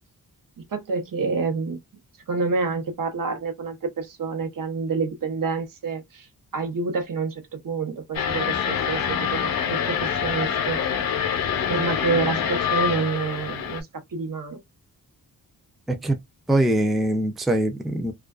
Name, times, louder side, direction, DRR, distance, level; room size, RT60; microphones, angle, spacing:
voice 1, 0.6-1.8 2.3-6.3 6.5-10.8 11.7-13.9 14.1-14.6, right 4 dB, 60° right, 0.8 m, -28 dB
sound 1, 8.1-13.8, left 8 dB, 70° left, 0.6 m, -25 dB
voice 2, 15.9-16.2 16.5-18.1, right 1 dB, ahead, 0.4 m, -22 dB
2.4 x 2.2 x 2.3 m
wide cardioid pair, 95°, 36 cm